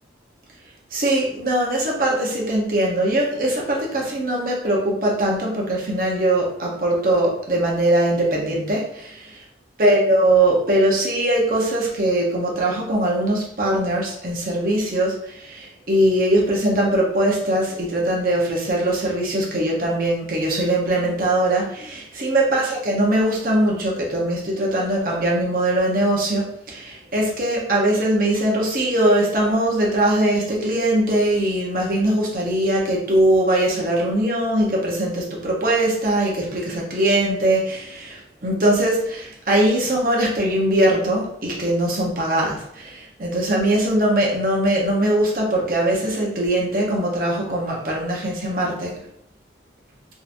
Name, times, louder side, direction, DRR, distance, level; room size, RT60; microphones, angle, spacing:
voice 1, 0.9-9.4 9.8-48.9, right 1 dB, 50° right, -2 dB, 0.9 m, -21 dB
3.7 x 3.0 x 2.6 m, 0.74 s
head